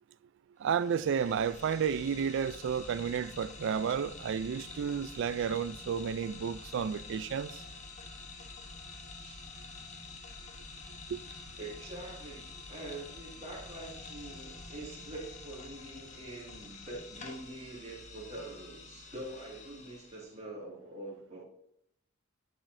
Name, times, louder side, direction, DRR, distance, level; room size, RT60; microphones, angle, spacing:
sound 1, 0.6-20.3, left 3 dB, 35° left, 1.1 m, -48 dB
voice 1, 0.6-7.5 11.1-11.2, right 7 dB, 60° right, 0.3 m, -32 dB
voice 2, 11.6-21.4, right 2 dB, 35° right, 2.0 m, -45 dB
10.0 x 6.1 x 2.6 m
head